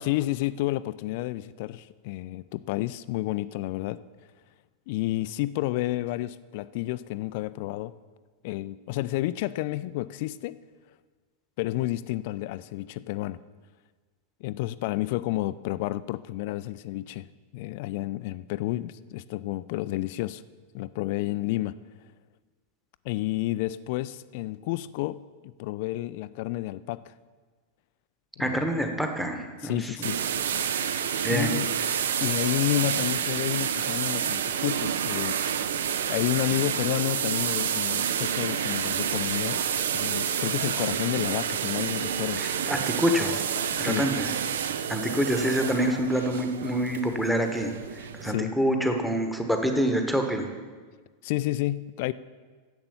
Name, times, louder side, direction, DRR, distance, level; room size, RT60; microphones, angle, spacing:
voice 1, 0.0-4.0 4.9-7.9 8.4-10.6 11.6-13.4 14.4-17.3 17.5-20.4 20.7-21.7 23.1-27.1 28.4-28.6 29.6-30.2 31.3-31.7 32.2-35.4 36.1-39.7 39.9-42.4 43.8-44.0 48.3-48.5 51.2-52.1, left 16 dB, 50° left, 16 dB, 0.3 m, -30 dB
voice 2, 28.4-29.9 31.2-31.6 42.4-43.4 43.8-44.3 44.9-50.5, equal, ahead, 4 dB, 1.3 m, -26 dB
sound 1, 30.0-48.3, right 8 dB, 60° right, 0.5 m, -29 dB
10.5 x 7.7 x 7.0 m, 1.4 s
figure-of-eight pair, 90°, 0 cm